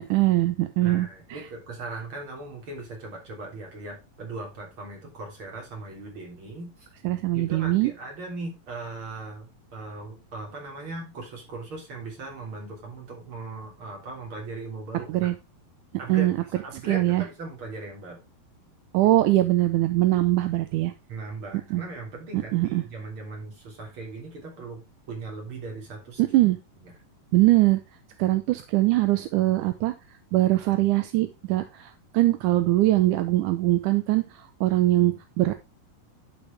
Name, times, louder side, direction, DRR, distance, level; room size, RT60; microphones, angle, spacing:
voice 1, 0.0-1.4 7.0-7.9 15.1-15.3 16.1-16.4 16.8-17.2 18.9-20.9 21.7-21.8 22.3-22.8 26.2-26.6 27.3-27.8 28.2-29.9 30.3-34.2 34.6-35.6, right 16 dB, 80° right, 9 dB, 2.0 m, -22 dB
voice 2, 0.8-6.9 7.3-15.3 16.0-18.2 21.1-26.2 26.8-26.9, right 3 dB, 35° right, 0 dB, 4.0 m, -39 dB
11.5 x 5.5 x 3.4 m, 0.25 s
omnidirectional pair, 4.0 m